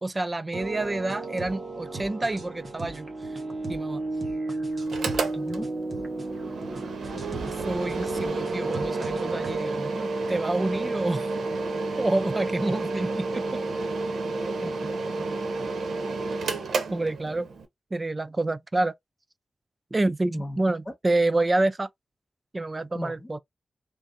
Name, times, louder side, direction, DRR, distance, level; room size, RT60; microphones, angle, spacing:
voice 1, 0.0-3.1 3.7-4.0 7.7-11.3 12.0-13.4 16.9-17.5 17.9-18.9 19.9-21.9 22.5-23.4, right 2 dB, 25° right, 0.3 m, -28 dB
sound 1, 0.5-9.6, right 2 dB, 40° right, 1.0 m, -33 dB
Mechanical fan, 4.8-17.7, right 3 dB, 85° right, 0.7 m, -31 dB
voice 2, 5.3-5.7 6.7-7.2 14.6-15.3 20.3-20.7 22.9-23.3, equal, 15° left, 0.9 m, -37 dB
3.3 x 2.4 x 2.4 m
wide cardioid pair, 100°, 0 cm